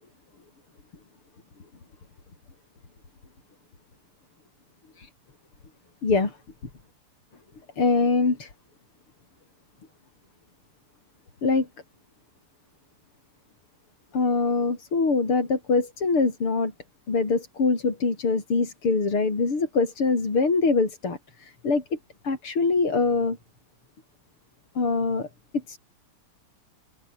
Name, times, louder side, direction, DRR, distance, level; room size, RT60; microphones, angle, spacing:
voice 1, 6.0-6.4 7.8-8.5 11.4-11.7 14.1-16.7 17.1-22.0 22.2-23.4 24.8-25.3 25.5-25.8, left 4 dB, 80° left, 5.6 m, -23 dB
omnidirectional pair, 2.4 m